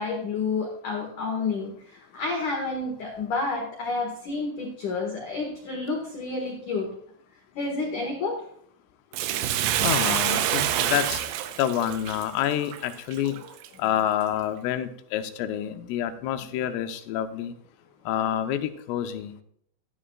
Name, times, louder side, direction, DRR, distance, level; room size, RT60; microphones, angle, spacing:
voice 1, 0.0-1.7 2.1-6.9 7.6-8.4, left 3 dB, 65° left, 0 dB, 2.0 m, -29 dB
Bathtub (filling or washing), 9.1-13.7 14.2-14.3, right 11 dB, 80° right, 2.8 m, -27 dB
voice 2, 9.8-11.2 11.6-13.4 13.8-17.5 18.1-19.3, left 11 dB, 85° left, 7 dB, 3.4 m, -28 dB
12.5 x 12.5 x 2.3 m, 0.65 s
omnidirectional pair, 5.9 m